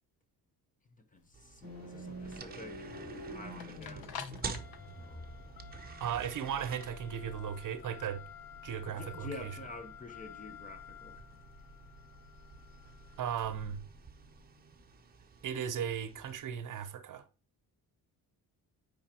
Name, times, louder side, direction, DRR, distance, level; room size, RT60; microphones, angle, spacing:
voice 1, 1.1-2.9 3.3-4.2 5.0-5.6 8.9-11.2, left 3 dB, 20° left, 0.8 m, -48 dB
sound 1, 1.2-15.3, left 9 dB, 65° left, 1.1 m, -52 dB
sound 2, 1.3-16.4, right 5 dB, 25° right, 0.8 m, -50 dB
sound 3, 1.6-14.7, equal, 40° left, 5.5 m, -50 dB
voice 2, 6.0-8.2 8.6-9.5 13.2-13.8 15.4-17.2, right 8 dB, 50° right, 0.8 m, -36 dB
9.1 x 5.1 x 4.3 m
cardioid pair, 160°, 39 cm